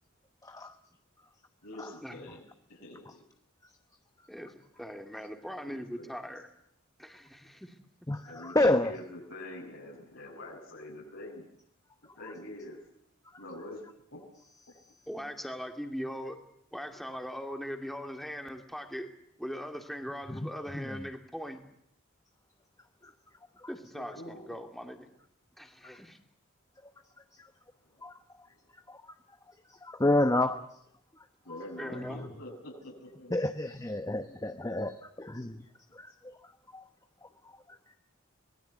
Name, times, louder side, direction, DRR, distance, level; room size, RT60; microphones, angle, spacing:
voice 1, 0.4-0.7 1.8-1.9 8.1-8.9 20.3-21.0 23.0-23.1 23.6-23.7 27.4-27.5 28.0-28.2 28.9-29.1 29.7-30.6 31.9-32.3 33.3-35.6 35.9-36.4 36.7-36.8, left 1 dB, 15° left, 7 dB, 1.0 m, -30 dB
voice 2, 1.6-2.4 2.7-3.2 5.4-6.1 8.3-11.5 12.2-12.8 13.4-13.8 14.1-14.2 23.9-24.4 27.8-28.0 31.4-33.4, left 1 dB, 75° left, -2 dB, 7.1 m, -45 dB
voice 3, 4.3-6.5 7.0-7.7 15.1-16.4 16.7-19.1 19.4-21.6 23.7-25.1 25.6-26.2 31.8-32.2, equal, ahead, 4 dB, 2.5 m, -40 dB
24.5 x 19.5 x 8.3 m, 0.74 s
head